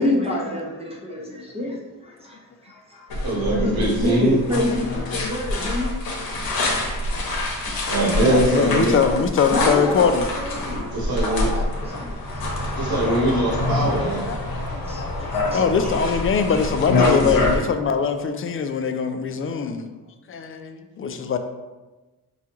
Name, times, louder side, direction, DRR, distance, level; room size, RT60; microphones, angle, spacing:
voice 1, 0.0-8.0 8.9-9.0 9.5-12.8 14.6-16.1 16.5-16.7, left 1 dB, 15° right, -3 dB, 0.7 m, -29 dB
sound 1, 3.1-17.6, left 2 dB, 85° left, 0.8 m, -26 dB
voice 2, 3.2-4.4 7.8-9.0 10.9-11.5 12.8-14.2, right 1 dB, 90° right, -5 dB, 1.2 m, -22 dB
voice 3, 4.5-5.2 5.8-5.9 8.1-10.3 13.2-13.3 14.0-19.9 20.3-21.4, left 6 dB, 40° left, 7 dB, 0.4 m, -23 dB
4.9 x 2.3 x 2.9 m, 1.2 s
cardioid pair, 70°, 35 cm